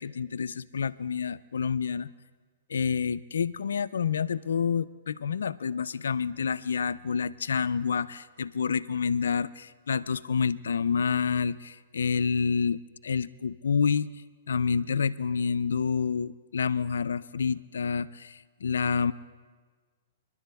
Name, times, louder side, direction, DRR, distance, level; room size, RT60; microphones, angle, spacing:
voice 1, 0.0-2.1 2.7-14.1 14.5-19.1, left 6 dB, 80° left, 16 dB, 0.3 m, -28 dB
29.0 x 11.0 x 2.3 m, 1.5 s
hypercardioid pair, 120°, 0 cm